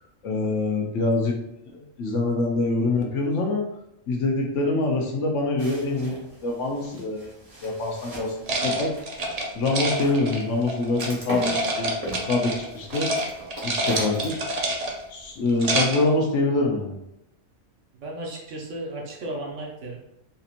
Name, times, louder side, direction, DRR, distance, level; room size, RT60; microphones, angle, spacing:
voice 1, 0.2-1.4 1.7-3.6 4.1-7.3 7.6-8.4 8.6-8.9 9.5-11.9 12.3-13.1 13.6-14.4 15.1-17.0, left 2 dB, 70° left, 1 dB, 1.0 m, -25 dB
sound 1, 5.6-15.6, equal, 30° right, 1.0 m, -40 dB
sound 2, 8.5-11.1 11.4-12.7 12.9-13.3 13.5-15.1 15.5-16.1, right 1 dB, 45° right, 0.5 m, -27 dB
voice 2, 18.0-20.0, right 1 dB, 70° right, -1 dB, 1.2 m, -34 dB
4.2 x 2.8 x 2.5 m, 0.83 s
omnidirectional pair, 1.3 m